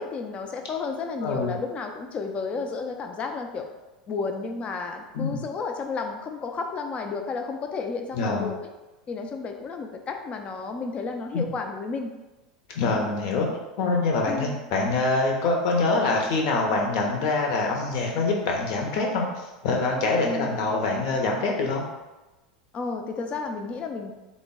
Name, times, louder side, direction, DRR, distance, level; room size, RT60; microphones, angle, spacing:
voice 1, 0.0-3.7 4.1-8.6 9.1-12.1 14.3-14.6 20.2-20.6 22.7-24.1, left 4 dB, 30° left, 5 dB, 0.4 m, -32 dB
voice 2, 1.2-1.5 5.1-5.4 8.1-8.5 11.3-11.4 12.7-13.5 13.8-21.8, left 3 dB, 55° left, 0 dB, 0.8 m, -25 dB
3.8 x 2.1 x 3.5 m, 1.1 s
figure-of-eight pair, 85°, 4 cm